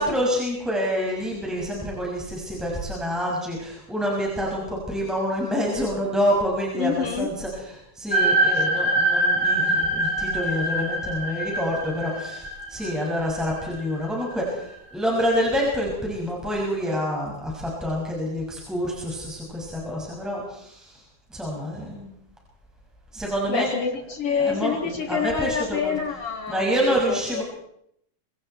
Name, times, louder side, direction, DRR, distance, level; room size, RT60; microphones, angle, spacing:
voice 1, 0.0-21.0 21.3-22.1 23.1-23.7 24.4-25.9 26.5-27.4, equal, ahead, -3 dB, 6.3 m, -27 dB
voice 2, 6.7-7.3 23.5-27.4, left 6 dB, 50° left, 2 dB, 4.4 m, -27 dB
sound 1, 8.1-14.3, right 1 dB, 20° left, 5.3 m, -24 dB
27.0 x 25.5 x 4.6 m, 0.72 s
omnidirectional pair, 3.3 m